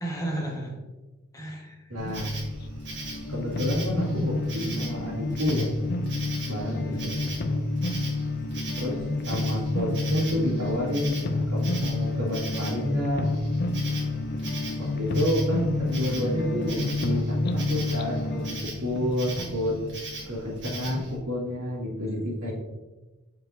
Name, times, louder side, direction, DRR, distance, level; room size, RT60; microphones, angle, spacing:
voice 1, 0.0-0.8 1.3-1.9 6.7-7.1 22.4-22.5, right 1 dB, 15° left, -2 dB, 1.4 m, -34 dB
voice 2, 1.9-2.4 3.3-5.7 6.5-7.2 8.8-9.0 9.3-13.2 14.8-18.4 18.8-19.7 20.3-22.5, equal, 85° right, -9 dB, 2.0 m, -29 dB
sound 1, 2.0-21.1, left 2 dB, 45° left, 0.4 m, -29 dB
Insect, 2.0-21.2, right 2 dB, 55° right, 1.4 m, -41 dB
7.5 x 4.8 x 2.7 m, 1.1 s
head